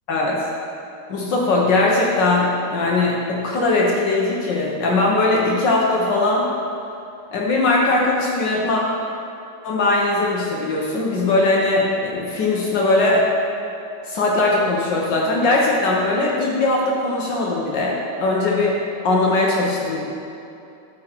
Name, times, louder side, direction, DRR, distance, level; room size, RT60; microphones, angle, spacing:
voice 1, 0.1-0.5 1.1-6.5 7.3-8.8 9.6-13.3 14.0-18.8 19.0-20.0, left 2 dB, 70° left, -3 dB, 1.7 m, -20 dB
11.5 x 6.4 x 4.5 m, 2.7 s
omnidirectional pair, 2.0 m